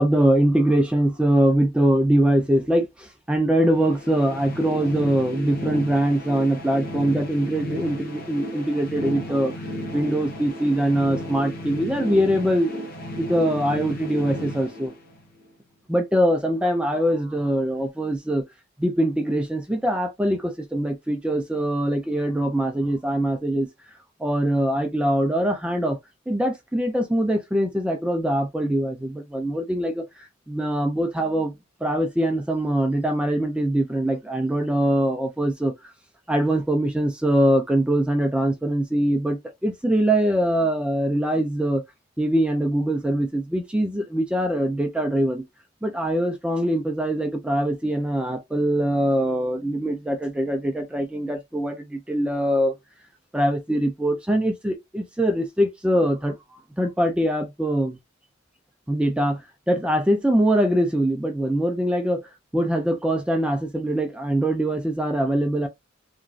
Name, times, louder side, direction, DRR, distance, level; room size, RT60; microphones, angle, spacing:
voice 1, 0.0-9.5 9.9-12.7 13.2-14.9 15.9-18.5 18.8-23.7 24.2-26.0 26.3-31.5 31.8-35.7 36.3-41.8 42.2-45.4 45.8-52.7 53.3-56.3 56.8-58.0 58.9-59.4 59.7-62.2 62.5-65.7, right 1 dB, 5° right, 0.3 m, -23 dB
sound 1, 3.6-15.5, left 1 dB, 45° left, 0.6 m, -34 dB
3.0 x 2.4 x 2.4 m
head